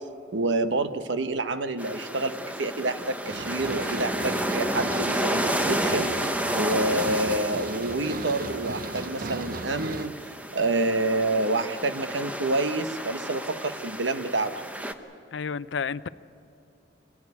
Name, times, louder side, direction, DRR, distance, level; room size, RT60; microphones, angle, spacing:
voice 1, 0.3-6.1 6.5-10.2 10.5-14.5, right 2 dB, 80° right, 9 dB, 1.1 m, -28 dB
sound 1, 1.8-14.9, right 1 dB, 10° right, 0.9 m, -31 dB
sound 2, 3.3-10.1, right 3 dB, 50° right, 0.8 m, -36 dB
voice 2, 15.3-16.1, left 6 dB, 75° left, 16 dB, 0.5 m, -30 dB
25.5 x 16.0 x 9.7 m, 2.7 s
head